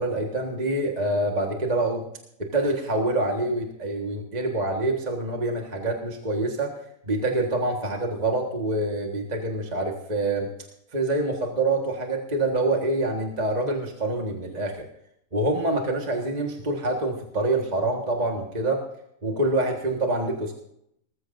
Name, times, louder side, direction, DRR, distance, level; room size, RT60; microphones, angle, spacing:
voice 1, 0.0-2.1 2.4-6.7 7.0-10.5 10.9-14.9 15.3-18.8 19.2-20.5, right 2 dB, 30° right, 1 dB, 1.7 m, -26 dB
20.5 x 14.0 x 2.6 m, 0.75 s
omnidirectional pair, 1.5 m